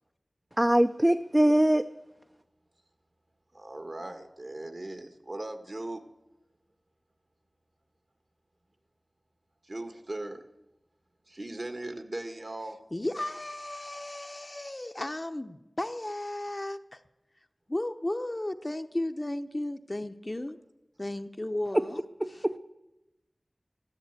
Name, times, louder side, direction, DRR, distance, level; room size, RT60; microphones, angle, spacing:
voice 1, 0.6-1.8 21.7-21.8 22.2-22.6, right 1 dB, 20° right, 6 dB, 0.6 m, -23 dB
voice 2, 3.5-6.0 9.6-10.5 11.3-12.8, right 2 dB, 55° right, 7 dB, 1.6 m, -39 dB
voice 3, 12.9-17.0 17.7-20.6 21.0-22.0, left 1 dB, 35° left, 8 dB, 0.9 m, -34 dB
13.5 x 13.0 x 8.2 m, 0.97 s
wide cardioid pair, 40°, 0 cm